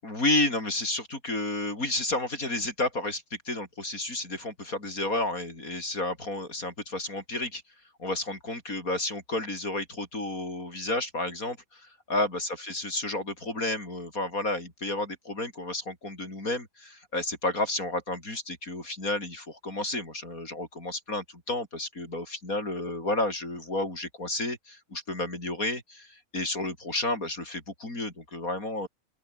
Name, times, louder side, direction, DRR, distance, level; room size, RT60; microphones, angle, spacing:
voice 1, 0.0-7.6 8.0-28.9, left 2 dB, 80° left, 7.4 m, -31 dB
open air
omnidirectional pair, 1.5 m